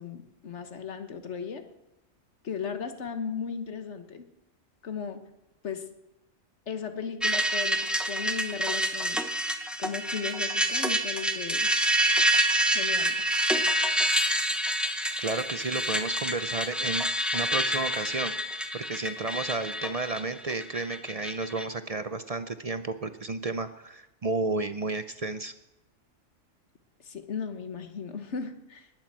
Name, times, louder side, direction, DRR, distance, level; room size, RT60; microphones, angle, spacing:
voice 1, 0.0-1.6 2.4-4.2 4.8-5.2 5.6-5.8 6.7-9.2 9.8-11.7 12.7-13.2 27.0-28.9, left 6 dB, 60° left, 8 dB, 1.5 m, -36 dB
sound 1, 7.2-21.6, right 1 dB, ahead, 0.8 m, -27 dB
voice 2, 15.2-18.3 18.7-25.5, right 3 dB, 45° right, 11 dB, 0.5 m, -32 dB
20.5 x 7.6 x 7.5 m, 0.94 s
omnidirectional pair, 1.4 m